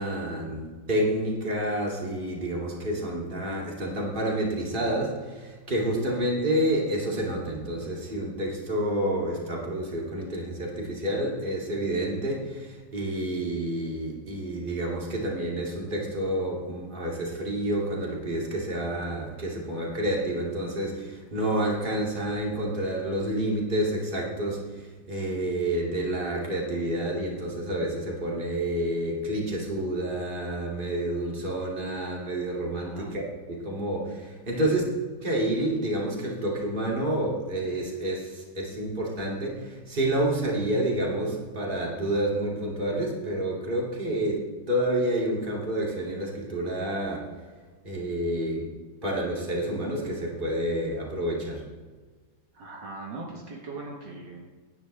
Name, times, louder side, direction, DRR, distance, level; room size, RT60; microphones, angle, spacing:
voice 1, 0.0-33.2 33.5-34.8 35.2-44.4 44.7-47.3 47.8-48.7 49.0-51.6, right 1 dB, 25° right, -3 dB, 2.7 m, -29 dB
voice 2, 32.8-33.1 34.5-34.7 52.5-54.4, right 3 dB, 60° right, -2 dB, 2.1 m, -40 dB
18.0 x 10.0 x 3.4 m, 1.4 s
omnidirectional pair, 2.1 m